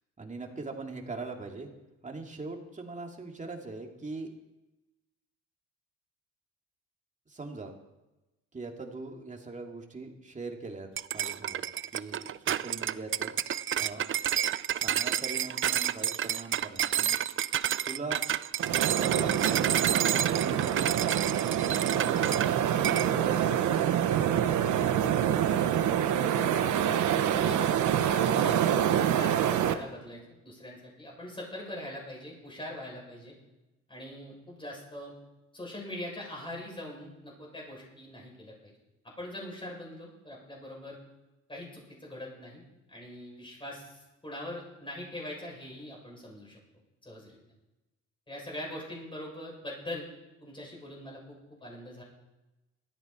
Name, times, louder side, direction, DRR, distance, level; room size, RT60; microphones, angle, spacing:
voice 1, 0.2-1.7 2.0-4.3 7.3-7.7 8.5-10.9 11.1-11.6 11.9-13.3 13.8-14.1 14.8-17.2 17.8-18.2 19.0-21.0 21.5-23.7 24.1-24.3, right 3 dB, 25° right, 2 dB, 2.6 m, -41 dB
sound 1, 11.0-22.5 22.8-23.1, right 10 dB, 45° right, 0.5 m, -30 dB
sound 2, 18.6-29.7, right 9 dB, 75° right, 1.1 m, -26 dB
voice 2, 27.3-27.7 28.0-28.6 28.9-33.3 33.9-35.1 35.5-38.7 39.2-41.0 41.5-42.6 42.9-46.6 47.0-47.4 48.3-50.1 50.4-52.0, left 1 dB, 15° left, -3 dB, 7.4 m, -42 dB
18.0 x 13.5 x 4.5 m, 1.0 s
cardioid pair, 90°, 30 cm